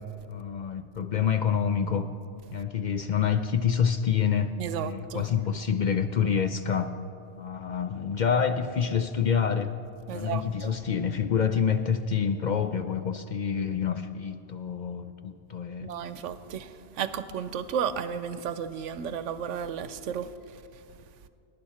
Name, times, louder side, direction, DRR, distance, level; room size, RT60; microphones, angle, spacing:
voice 1, 0.3-2.1 2.5-4.5 4.8-6.9 7.4-9.7 10.1-15.9, left 7 dB, 55° left, 0.5 m, -27 dB
voice 2, 4.6-5.3 10.1-10.7 15.8-20.8, right 7 dB, 85° right, 1.0 m, -33 dB
20.0 x 10.5 x 4.3 m
omnidirectional pair, 1.2 m